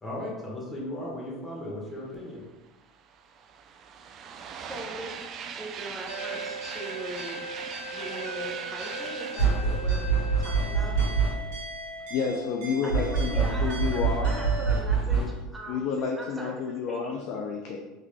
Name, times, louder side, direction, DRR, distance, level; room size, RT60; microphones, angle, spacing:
voice 1, 0.0-2.4, left 1 dB, 15° left, -4 dB, 1.3 m, -36 dB
sound 1, 2.4-2.5 2.7-11.4, right 6 dB, 45° right, 0.3 m, -41 dB
voice 2, 4.7-5.2 5.6-7.5 7.9-11.0 12.8-15.2 15.5-17.2, right 1 dB, 10° right, -2 dB, 0.7 m, -40 dB
sound 2, 6.1-14.8, right 2 dB, 80° right, 1.0 m, -38 dB
sound 3, 9.4-11.6 12.9-15.6, right 5 dB, 85° left, 1.5 m, -25 dB
voice 3, 12.1-14.4 15.1-15.3 15.7-17.8, left 5 dB, 65° left, 1 dB, 0.4 m, -30 dB
3.6 x 3.2 x 2.2 m, 1.1 s
supercardioid pair, 100°, 0 cm